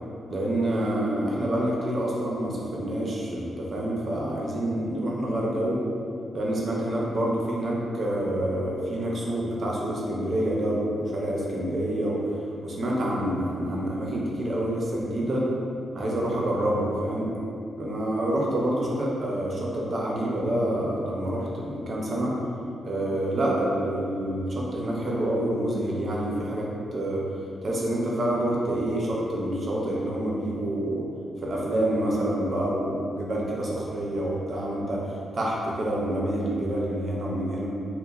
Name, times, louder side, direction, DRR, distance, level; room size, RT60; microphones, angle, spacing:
voice 1, 0.3-5.8 6.3-12.3 12.6-15.5 15.9-17.3 17.8-22.4 22.8-27.3 27.6-31.0 31.4-37.7, right 1 dB, 45° right, -3 dB, 0.5 m, -27 dB
3.0 x 2.0 x 2.3 m, 2.6 s
cardioid pair, 110°, 0 cm